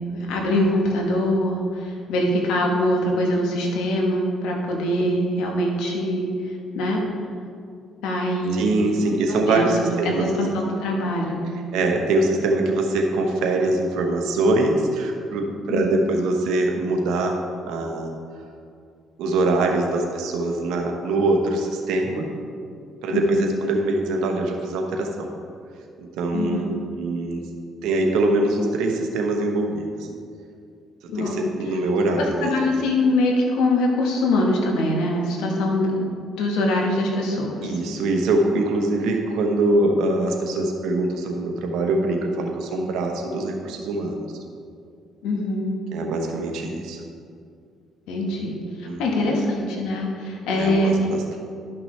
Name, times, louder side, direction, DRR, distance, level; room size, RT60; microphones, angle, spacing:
voice 1, 0.0-6.2 6.7-7.0 8.0-9.0 9.4-9.8 10.0-11.4 15.7-16.0 23.1-23.4 26.3-26.6 31.1-31.4 32.2-36.1 36.4-37.7 45.2-45.8 48.1-50.9, left 1 dB, 90° left, 0 dB, 1.4 m, -23 dB
voice 2, 8.5-10.7 11.7-18.1 19.2-22.3 23.0-25.3 26.0-27.4 27.8-30.1 31.1-32.5 37.6-44.3 45.9-47.0 48.9-49.4 50.5-51.4, right 2 dB, 85° right, 2 dB, 1.1 m, -23 dB
11.5 x 5.9 x 3.3 m, 2.3 s
cardioid pair, 90°, 0 cm